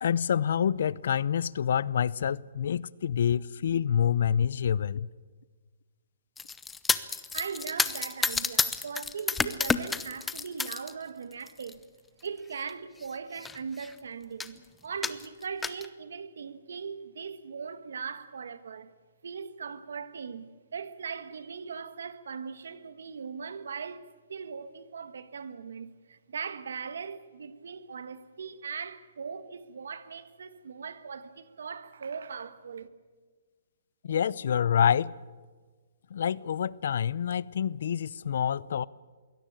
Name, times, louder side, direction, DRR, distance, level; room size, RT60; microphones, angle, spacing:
voice 1, 0.0-5.1 34.0-35.1 36.1-38.9, left 8 dB, 65° left, 0.6 m, -27 dB
sound 1, 6.4-10.9 11.3-11.7 12.6-12.7 13.0-13.1 13.3-13.9 14.4-14.6 15.0-15.9, left 4 dB, 10° left, 0.7 m, -30 dB
voice 2, 7.3-11.8 12.2-18.9 19.2-32.9, right 6 dB, 80° right, 1.6 m, -39 dB
22.5 x 17.5 x 9.0 m
hypercardioid pair, 155°, 0 cm